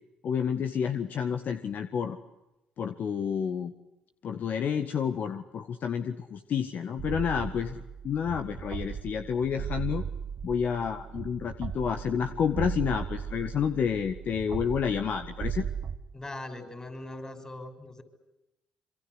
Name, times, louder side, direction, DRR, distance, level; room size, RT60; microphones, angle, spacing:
voice 1, 0.2-2.2 2.8-3.7 4.2-10.0 10.4-15.7, left 7 dB, 55° left, 8 dB, 1.7 m, -30 dB
sound 1, 7.0-16.0, right 8 dB, 55° right, 1.6 m, -37 dB
voice 2, 16.1-18.0, left 1 dB, 20° left, 10 dB, 6.3 m, -40 dB
26.5 x 24.5 x 8.0 m, 0.94 s
hypercardioid pair, 55°, 3 cm